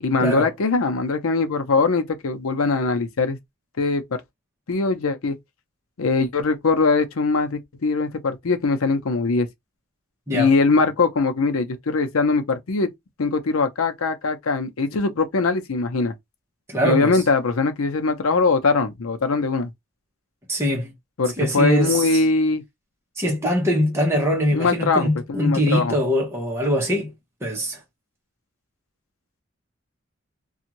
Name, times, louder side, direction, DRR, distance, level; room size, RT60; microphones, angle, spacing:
voice 1, 0.0-3.4 3.8-4.0 4.7-5.4 6.0-9.5 10.3-12.9 13.2-16.1 16.8-19.7 21.2-22.6 24.5-26.0, left 4 dB, 90° left, 0.6 m, -21 dB
voice 2, 16.7-17.2 20.5-20.9 21.4-22.1 23.2-27.1 27.4-27.8, equal, 10° right, 0.9 m, -22 dB
2.6 x 2.4 x 2.9 m
head